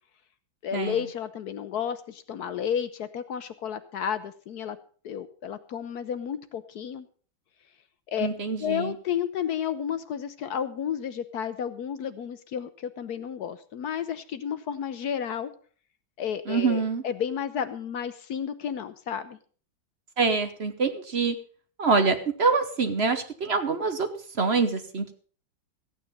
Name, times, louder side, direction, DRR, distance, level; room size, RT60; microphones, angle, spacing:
voice 1, 0.6-4.8 5.0-7.1 8.1-8.3 8.6-15.5 16.2-19.4, left 8 dB, 65° left, 12 dB, 1.1 m, -32 dB
voice 2, 8.2-8.9 16.5-17.0 20.2-21.4 21.8-24.1 24.3-25.1, right 4 dB, 45° right, 9 dB, 0.9 m, -25 dB
15.0 x 9.1 x 5.4 m, 0.43 s
omnidirectional pair, 2.2 m